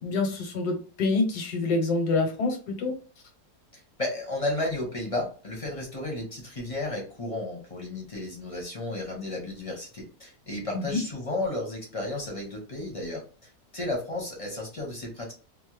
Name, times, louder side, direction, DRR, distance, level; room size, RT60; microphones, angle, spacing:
voice 1, 0.0-2.9 10.7-11.0, left 3 dB, 80° left, 3 dB, 1.4 m, -26 dB
voice 2, 3.7-15.3, left 2 dB, 30° left, 0 dB, 0.7 m, -33 dB
3.1 x 2.0 x 3.0 m, 0.39 s
omnidirectional pair, 1.7 m